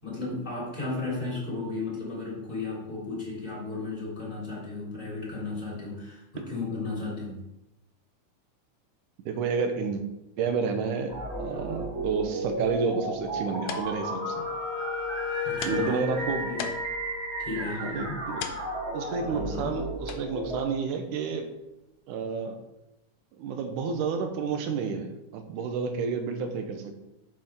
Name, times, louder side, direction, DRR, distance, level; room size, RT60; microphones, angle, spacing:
voice 1, 0.0-7.4 15.4-16.2 16.4-16.6 17.4-18.2 19.2-19.7, left 3 dB, 15° left, -6 dB, 3.2 m, -34 dB
voice 2, 9.3-10.0 10.4-14.5 15.6-16.5 17.6-18.4 18.9-21.5 22.1-22.6 23.4-26.9, right 5 dB, 80° right, 6 dB, 2.5 m, -30 dB
sound 1, 11.1-20.6, right 2 dB, 35° right, 1.0 m, -34 dB
sound 2, 13.2-22.5, left 7 dB, 70° left, 1.8 m, -45 dB
Wind instrument woodwind instrument, 13.8-17.7, left 7 dB, 55° left, 1.9 m, -35 dB
9.2 x 7.3 x 3.8 m, 0.92 s
omnidirectional pair, 3.6 m